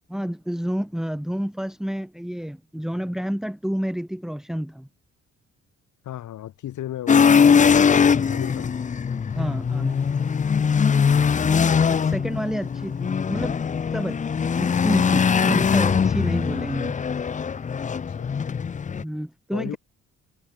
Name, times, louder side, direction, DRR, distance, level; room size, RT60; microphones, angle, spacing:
voice 1, 0.1-4.9 9.3-10.3 11.4-13.6 13.9-14.2 14.5-16.9 19.0-19.8, equal, ahead, 2.7 m, -29 dB
voice 2, 6.0-7.3 8.3-8.8 18.1-18.4 19.5-19.8, left 12 dB, 75° left, 4.4 m, -34 dB
sound 1, 7.1-19.0, left 6 dB, 25° left, 0.5 m, -21 dB
cardioid pair, 90°, 30 cm